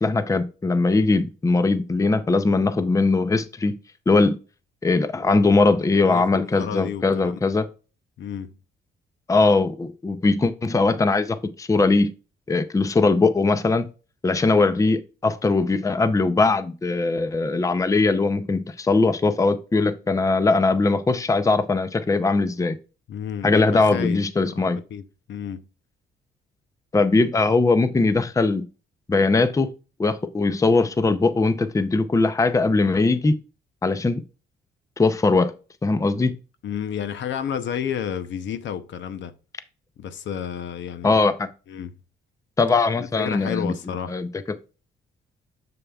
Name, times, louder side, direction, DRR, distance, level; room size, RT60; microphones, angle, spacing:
voice 1, 0.0-3.8 4.1-4.4 4.8-7.7 9.3-12.1 12.5-13.9 14.2-22.8 23.4-24.8 26.9-28.6 29.1-29.7 30.0-33.4 33.8-34.2 35.0-35.5 35.8-36.3 41.0-41.5 42.6-43.7 44.1-44.3, left 3 dB, 15° left, 0.6 m, -20 dB
voice 2, 6.0-7.6 8.2-8.5 23.1-24.2 24.5-25.6 36.6-39.3 40.0-41.2 41.7-41.9 43.0-44.2, left 8 dB, 70° left, 0.7 m, -31 dB
6.9 x 6.7 x 2.3 m
cardioid pair, 90°, 20 cm